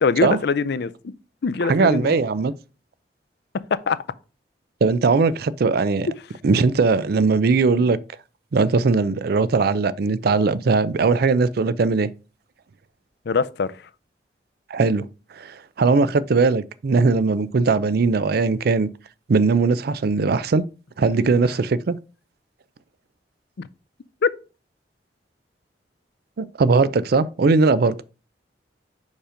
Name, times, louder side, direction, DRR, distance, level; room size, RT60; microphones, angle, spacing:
voice 1, 0.0-1.1 1.4-2.1 3.7-4.0 13.3-13.7 24.2-24.3, left 5 dB, 65° left, 0.5 m, -22 dB
voice 2, 1.6-2.5 4.8-6.1 6.4-8.0 8.5-12.1 14.7-15.1 15.4-18.9 19.3-20.6 21.0-22.0 26.4-28.0, right 4 dB, 60° right, 0.4 m, -19 dB
5.3 x 5.0 x 5.0 m
head